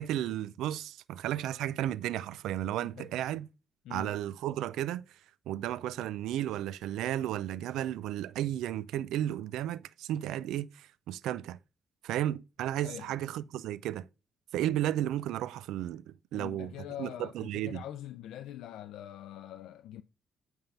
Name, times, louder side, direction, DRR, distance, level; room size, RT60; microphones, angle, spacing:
voice 1, 0.0-3.5 3.9-5.0 5.5-11.6 12.0-14.1 14.5-16.0 16.3-16.7 17.0-17.8, right 12 dB, 90° right, 0.5 m, -33 dB
voice 2, 3.8-4.2 12.8-13.1 16.3-20.0, left 12 dB, 85° left, 0.5 m, -43 dB
9.0 x 3.6 x 5.4 m
cardioid pair, 90°, 0 cm